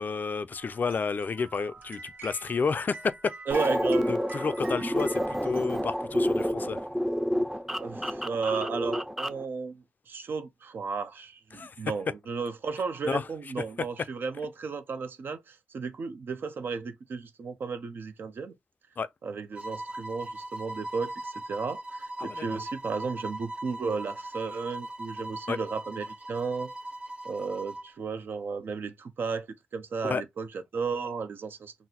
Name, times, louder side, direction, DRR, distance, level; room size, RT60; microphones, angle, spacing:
voice 1, 0.0-3.3 4.1-6.8 11.5-11.8 13.1-13.3 19.0-19.1 22.2-22.4 25.5-25.6 30.0-30.2, left 5 dB, 60° left, 0.3 m, -31 dB
sound 1, 0.5-6.4, right 3 dB, 65° right, 1.1 m, -46 dB
sound 2, 3.5-9.4, equal, 10° right, 0.4 m, -29 dB
voice 2, 3.5-4.1 7.8-18.5 19.2-26.7 27.2-29.5 29.7-31.7, right 5 dB, 80° right, 0.5 m, -34 dB
sound 3, 19.5-27.9, right 1 dB, 25° right, 0.8 m, -39 dB
3.8 x 2.0 x 2.8 m
cardioid pair, 45°, 3 cm